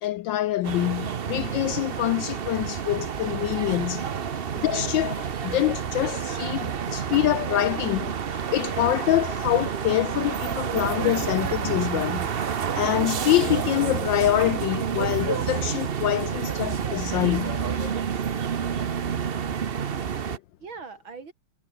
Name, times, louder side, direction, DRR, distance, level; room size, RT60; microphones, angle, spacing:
voice 1, 0.0-4.1 4.3-12.3 12.7-18.0 20.3-20.4, left 14 dB, 75° left, 1.1 m, -25 dB
sound 1, 0.6-20.4, right 7 dB, 80° right, 0.5 m, -29 dB
sound 2, 2.4-19.6, left 4 dB, 25° left, 1.9 m, -52 dB
voice 2, 19.6-21.3, right 4 dB, 65° right, 4.3 m, -44 dB
omnidirectional pair, 2.4 m